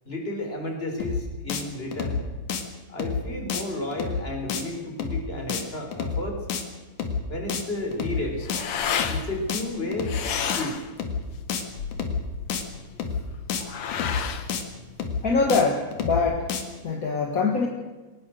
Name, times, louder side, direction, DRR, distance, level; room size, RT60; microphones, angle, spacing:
voice 1, 0.1-2.2 2.9-6.4 7.3-8.4 9.1-10.1 10.5-10.8, left 1 dB, 20° left, 3 dB, 4.0 m, -32 dB
sound 1, 1.0-1.2 1.5-1.6 1.9-2.2 2.5-2.6 3.0-3.2 3.5-3.6 3.9-4.2 4.5-4.6 5.0-5.2 5.5-5.6 5.9-6.2 6.5-6.6 7.0-7.2 7.5-7.6 7.9-8.2 8.5-8.6 9.0-9.2 9.5-9.6 9.9-10.2 10.5-10.6 11.0-11.2 11.5-11.6 11.9-12.2 12.5-12.6 13.0-13.2 13.5-13.6 13.9-14.2 14.5-14.6 15.0-15.2 15.5-15.6 15.9-16.2 16.5-16.6, left 6 dB, 85° left, 3.5 m, -29 dB
sound 2, 7.8-15.7, left 7 dB, 55° left, 1.9 m, -33 dB
voice 2, 15.2-16.5 16.8-17.7, left 4 dB, 35° left, 2 dB, 1.7 m, -23 dB
22.0 x 19.5 x 6.5 m, 1.2 s
omnidirectional pair, 3.5 m